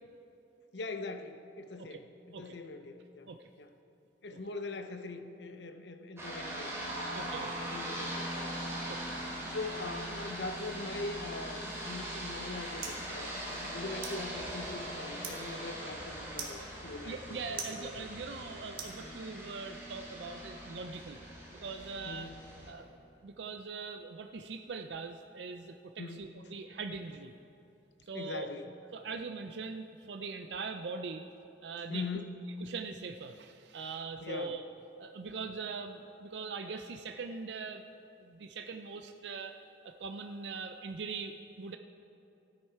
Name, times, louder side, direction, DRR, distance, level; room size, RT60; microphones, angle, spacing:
voice 1, 0.7-2.1 2.4-3.3 3.6-3.7 4.2-8.5 8.9-9.0 9.5-18.1 22.1-22.3 26.0-26.3 28.1-28.7 31.9-32.3 34.2-34.5, left 3 dB, 75° left, 8 dB, 0.7 m, -42 dB
sound 1, 6.2-22.7, right 1 dB, 15° right, 3.0 m, -41 dB
voice 2, 7.1-7.5 8.9-9.0 17.0-21.2 21.6-22.4 22.7-22.9 23.2-27.3 28.1-28.5 28.9-31.3 31.6-32.1 32.6-34.6 35.0-37.8 38.2-39.6 39.8-41.8, right 4 dB, 75° right, 6 dB, 0.5 m, -41 dB
sound 2, 12.0-19.6, right 5 dB, 55° right, 1.5 m, -48 dB
14.5 x 9.6 x 4.6 m, 2.8 s
head